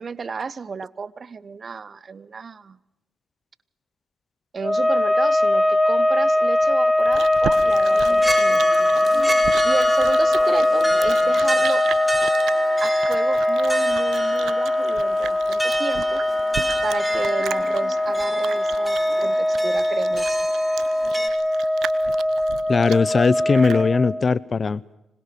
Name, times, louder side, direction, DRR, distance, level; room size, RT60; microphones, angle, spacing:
voice 1, 0.0-2.8 4.5-8.6 9.6-11.8 12.8-20.4, right 5 dB, 45° right, 20 dB, 1.1 m, -32 dB
sound 1, 4.6-24.3, left 1 dB, 20° left, 1.4 m, -21 dB
Chewing mastication, 6.6-23.9, right 10 dB, 75° right, 1.3 m, -36 dB
sound 2, 7.7-21.3, right 1 dB, 5° right, 4.6 m, -30 dB
voice 2, 22.7-24.8, left 4 dB, 40° left, 22 dB, 0.9 m, -19 dB
26.0 x 21.5 x 7.0 m, 0.91 s
supercardioid pair, 60°, 0 cm